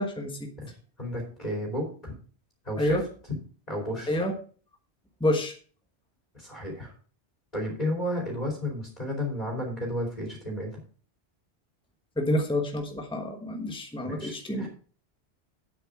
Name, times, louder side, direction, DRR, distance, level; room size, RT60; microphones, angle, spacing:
voice 1, 0.0-0.5 2.8-3.0 4.1-4.4 5.2-5.5 12.2-14.7, left 1 dB, 5° left, 3 dB, 1.2 m, -28 dB
voice 2, 0.6-2.1 2.6-3.0 3.7-4.2 6.3-6.9 7.5-10.7 14.0-14.7, left 1 dB, 35° left, -1 dB, 3.0 m, -32 dB
8.9 x 7.5 x 4.8 m, 0.41 s
omnidirectional pair, 1.1 m